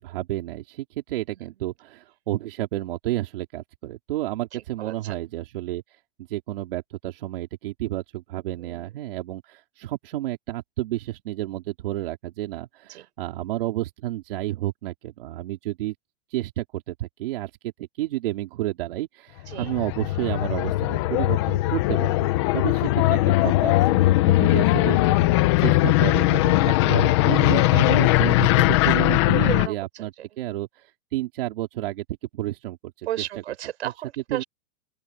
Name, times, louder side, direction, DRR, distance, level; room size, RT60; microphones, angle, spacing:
voice 1, 0.0-5.8 6.3-15.9 16.3-32.0 32.3-33.1 33.8-33.9 34.3-34.4, right 15 dB, 60° right, 3.5 m, -31 dB
voice 2, 4.8-5.3 8.6-8.9 12.9-13.1 19.5-19.8 22.7-22.9 29.5-30.3 33.1-34.4, right 12 dB, 85° right, 6.2 m, -34 dB
sound 1, 19.5-29.7, left 17 dB, 25° left, 0.6 m, -20 dB
open air
supercardioid pair, 180°, 32 cm